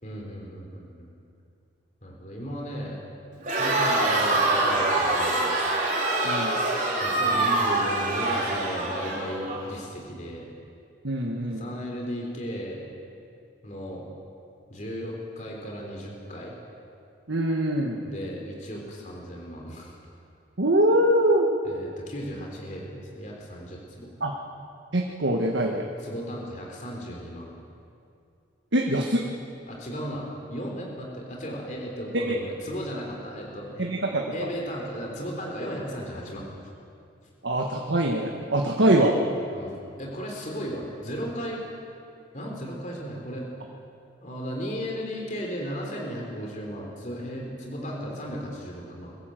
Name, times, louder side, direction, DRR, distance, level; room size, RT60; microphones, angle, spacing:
voice 1, 0.0-1.1 2.0-3.0 3.6-5.5 7.0-10.5 11.6-12.8 13.6-14.1 14.7-16.5 18.0-19.9 21.6-24.1 26.0-27.5 29.7-33.9 34.3-36.5 37.2-37.3 39.5-41.6 42.3-43.5 44.2-49.2, equal, 40° left, -1 dB, 3.6 m, -35 dB
Crowd, 3.4-9.6, right 2 dB, 40° right, 3.9 m, -24 dB
voice 2, 6.2-6.6 11.0-11.7 17.3-18.0 20.6-21.5 24.2-24.3 24.9-25.8 28.7-29.2 32.1-32.4 33.8-34.5 37.4-39.2, right 1 dB, 80° right, 1 dB, 1.6 m, -23 dB
23.5 x 15.5 x 7.8 m, 2.5 s
head